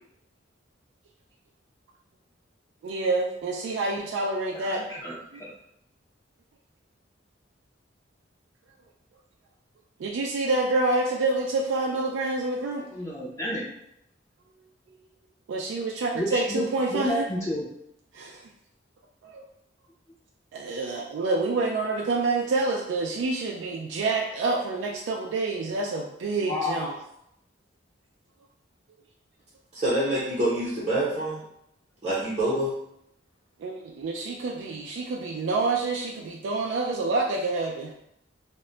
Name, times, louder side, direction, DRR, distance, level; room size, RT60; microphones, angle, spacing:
voice 1, 2.8-4.8 5.3-5.4 10.0-12.9 15.5-17.3 18.1-18.4 19.2-19.4 20.5-27.0 33.6-37.9, right 3 dB, 70° right, 0 dB, 0.3 m, -27 dB
voice 2, 4.5-5.5 12.9-13.7 16.1-16.6 16.9-17.7 26.4-26.8, left 1 dB, 15° left, -8 dB, 0.4 m, -31 dB
voice 3, 29.7-31.4 32.0-32.7, right 1 dB, 35° right, -10 dB, 0.7 m, -26 dB
2.1 x 2.0 x 3.7 m, 0.76 s
head